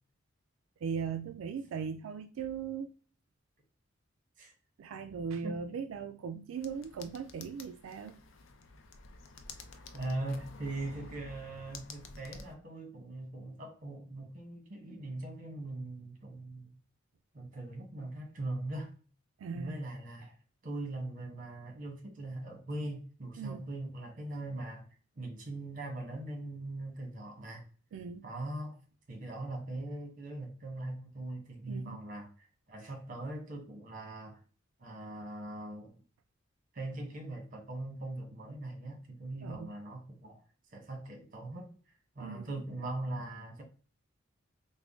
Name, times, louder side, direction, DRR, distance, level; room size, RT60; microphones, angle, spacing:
voice 1, 0.8-2.9 4.8-8.2 19.4-19.8 23.4-23.7 27.9-28.3 31.7-32.0 39.4-39.7 42.2-42.5, right 6 dB, 80° right, 0.3 m, -39 dB
sound 1, 6.6-12.5, left 3 dB, 70° left, 0.5 m, -50 dB
voice 2, 9.9-16.7 17.3-18.9 19.5-20.4 20.6-24.9 25.2-27.6 28.2-28.8 29.1-32.3 32.7-34.4 34.8-36.0 36.7-40.4 40.7-43.6, right 2 dB, 40° right, 1.1 m, -41 dB
3.5 x 2.1 x 3.6 m
head